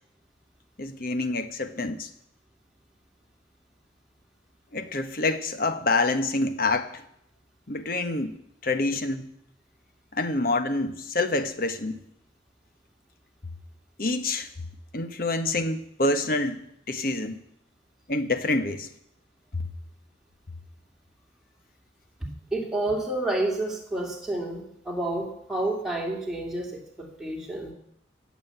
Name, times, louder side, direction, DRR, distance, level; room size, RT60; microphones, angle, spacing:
voice 1, 0.8-2.1 4.7-7.0 7.7-8.4 8.6-9.3 10.1-12.0 14.0-14.5 14.9-17.4 18.1-18.9 19.5-19.6, left 2 dB, 50° left, 9 dB, 1.1 m, -27 dB
voice 2, 22.5-27.7, right 2 dB, ahead, -1 dB, 2.5 m, -29 dB
16.5 x 7.2 x 8.2 m, 0.74 s
head